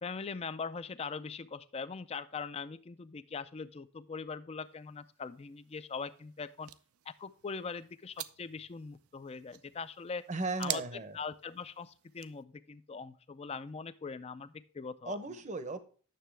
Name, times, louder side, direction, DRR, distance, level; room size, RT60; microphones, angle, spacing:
voice 1, 0.0-6.7 7.1-10.3 10.6-10.8 11.1-15.2, left 5 dB, 30° left, 13 dB, 0.4 m, -41 dB
sound 1, 4.6-12.4, right 14 dB, 80° right, 0.5 m, -47 dB
voice 2, 10.3-11.2 15.1-15.8, right 3 dB, 35° right, 11 dB, 0.8 m, -36 dB
9.4 x 6.8 x 3.3 m, 0.40 s
head